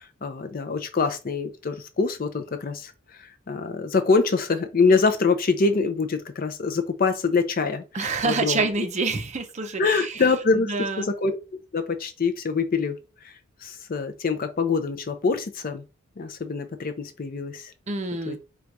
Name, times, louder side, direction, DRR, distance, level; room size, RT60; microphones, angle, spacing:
voice 1, 0.2-2.9 3.2-8.7 9.8-11.4 11.7-13.0 13.6-15.8 16.2-17.7 18.3-18.4, left 4 dB, 40° left, 0.5 m, -24 dB
voice 2, 7.9-10.2 10.5-11.1 17.9-18.4, right 4 dB, 35° right, 0.6 m, -27 dB
3.9 x 2.3 x 4.5 m
head